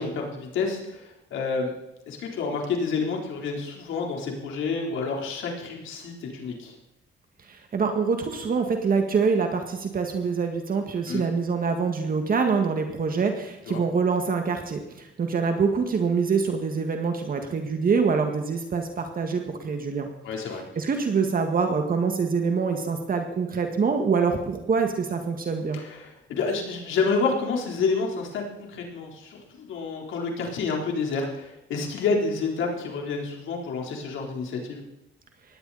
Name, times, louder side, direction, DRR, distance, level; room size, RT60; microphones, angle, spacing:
voice 1, 0.0-1.7 2.1-6.7 11.1-11.3 13.7-13.8 20.2-20.6 25.7-34.8, left 4 dB, 80° left, 1 dB, 3.8 m, -29 dB
voice 2, 7.4-20.1 20.8-25.8, right 5 dB, 45° right, 4 dB, 2.0 m, -25 dB
19.0 x 15.5 x 4.2 m, 0.90 s
cardioid pair, 90°, 20 cm